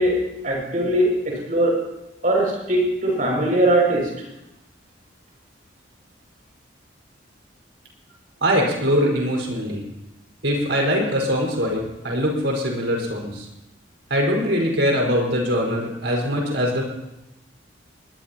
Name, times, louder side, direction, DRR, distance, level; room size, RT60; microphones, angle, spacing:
voice 1, 0.0-1.9 2.2-4.1, right 1 dB, 40° right, -2 dB, 6.2 m, -21 dB
voice 2, 8.4-9.8 10.4-13.5 14.1-16.8, equal, 70° right, -1 dB, 5.1 m, -22 dB
22.0 x 20.5 x 3.0 m, 0.91 s
head